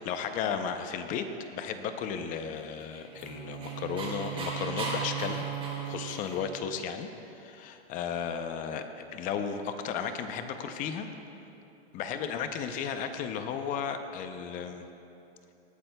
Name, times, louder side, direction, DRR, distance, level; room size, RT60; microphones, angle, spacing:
voice 1, 0.0-5.4 5.8-11.1 11.9-14.8, left 7 dB, 25° left, 8 dB, 0.5 m, -34 dB
Dog, 2.7-6.6, right 2 dB, 15° right, 2.9 m, -38 dB
sound 1, 3.1-6.6, right 10 dB, 35° right, 1.8 m, -38 dB
18.5 x 11.5 x 2.2 m, 2.8 s
hypercardioid pair, 140°, 32 cm